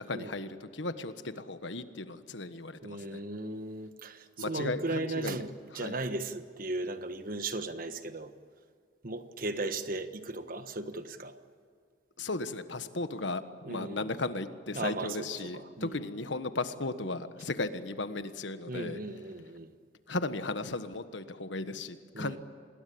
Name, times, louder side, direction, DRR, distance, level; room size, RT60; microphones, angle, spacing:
voice 1, 0.0-3.2 4.4-5.4 5.8-6.0 12.2-13.4 13.7-19.0 20.1-22.4, left 2 dB, 80° left, 1.4 m, -36 dB
voice 2, 2.8-8.3 9.0-11.3 13.6-14.1 14.7-16.0 18.7-19.7 22.1-22.4, right 2 dB, 50° right, 1.4 m, -36 dB
27.0 x 21.0 x 8.6 m
head